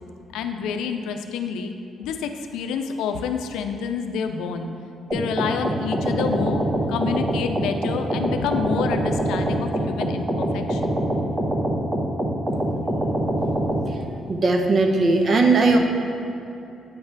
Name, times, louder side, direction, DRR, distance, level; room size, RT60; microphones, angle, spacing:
voice 1, 0.3-1.7 2.0-4.7 5.1-6.6 6.9-10.9, left 6 dB, 90° left, 6 dB, 0.4 m, -28 dB
sound 1, 5.1-13.8, right 1 dB, 15° right, 1.0 m, -24 dB
voice 2, 14.3-15.8, right 3 dB, 45° right, 3 dB, 0.8 m, -18 dB
8.6 x 3.3 x 5.9 m, 2.7 s
cardioid pair, 90°, 0 cm